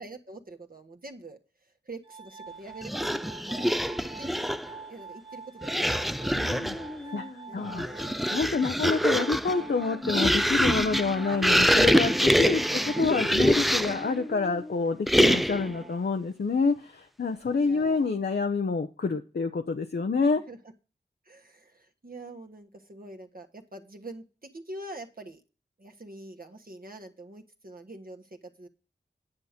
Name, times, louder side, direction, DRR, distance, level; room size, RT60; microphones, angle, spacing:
voice 1, 0.0-4.5 4.9-7.2 7.5-8.4 15.6-16.0 17.5-18.1 20.5-20.6 21.2-25.4 25.8-28.7, right 2 dB, 50° right, 5 dB, 1.5 m, -46 dB
Glass, 2.0-14.1, right 5 dB, 25° right, 0.8 m, -45 dB
sound 1, 2.8-4.7 5.6-6.9 7.6-14.1 15.1-15.7, equal, ahead, 0.4 m, -25 dB
sound 2, 6.2-14.7, left 1 dB, 25° left, 1.2 m, -43 dB
voice 2, 6.3-6.8 7.1-7.9 8.3-20.4, left 4 dB, 60° left, 5 dB, 0.8 m, -28 dB
9.7 x 6.5 x 5.1 m, 0.34 s
cardioid pair, 40°, 19 cm